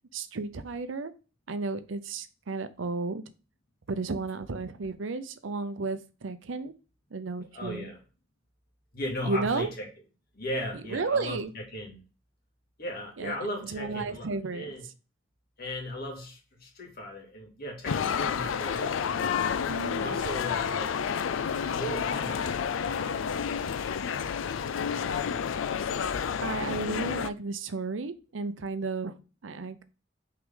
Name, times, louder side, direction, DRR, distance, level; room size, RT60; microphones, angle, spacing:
voice 1, 0.1-1.1 1.5-3.2 3.9-6.7 7.1-7.9 9.2-9.7 10.9-11.5 13.2-13.3 13.7-14.7 19.7-20.2 26.4-29.8, right 3 dB, 80° right, 0.6 m, -33 dB
voice 2, 7.5-8.0 8.9-9.9 10.3-12.0 12.8-14.8 15.6-19.5 20.0-21.1 21.7-22.5 22.8-23.7, equal, 50° left, 2.3 m, -37 dB
sound 1, 17.8-27.3, left 7 dB, 80° left, 0.4 m, -30 dB
6.1 x 4.7 x 3.8 m
head